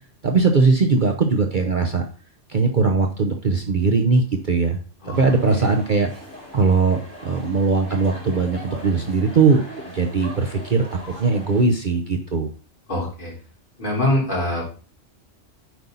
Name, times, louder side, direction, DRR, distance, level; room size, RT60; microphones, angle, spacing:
voice 1, 0.2-2.0 2.5-4.8 5.1-6.1 6.5-9.6 9.9-12.5, right 4 dB, 45° right, 3 dB, 0.9 m, -20 dB
sound 1, 5.1-11.6, equal, 10° left, 4.3 m, -40 dB
voice 2, 12.9-13.3 13.8-14.8, left 1 dB, 40° left, -5 dB, 4.2 m, -24 dB
9.3 x 5.5 x 4.0 m, 0.39 s
omnidirectional pair, 1.3 m